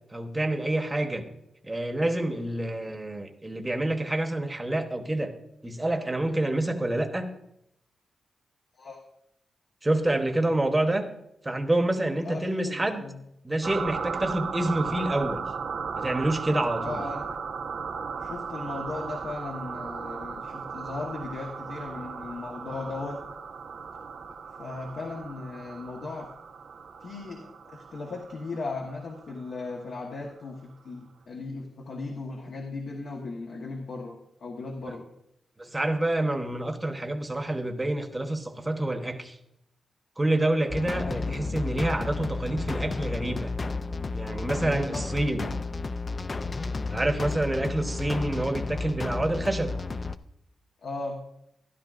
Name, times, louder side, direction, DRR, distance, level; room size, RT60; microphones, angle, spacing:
voice 1, 0.1-1.2 1.6-5.3 5.6-7.3 9.8-11.1 11.4-13.1 13.4-15.4 16.0-17.0 35.6-39.4 40.2-43.5 44.1-45.5 46.9-49.8, right 1 dB, 15° right, 6 dB, 0.9 m, -27 dB
voice 2, 12.2-13.2 16.8-17.3 18.2-23.2 24.6-26.3 27.0-35.1 40.9-41.4 44.6-45.1 45.4-45.6 50.8-51.2, left 3 dB, 65° left, 0 dB, 1.1 m, -37 dB
sound 1, 13.6-29.9, right 5 dB, 85° right, 1.0 m, -36 dB
sound 2, 40.7-50.2, left 3 dB, 35° left, 0.4 m, -32 dB
13.5 x 11.5 x 2.5 m, 0.80 s
wide cardioid pair, 120°, 0 cm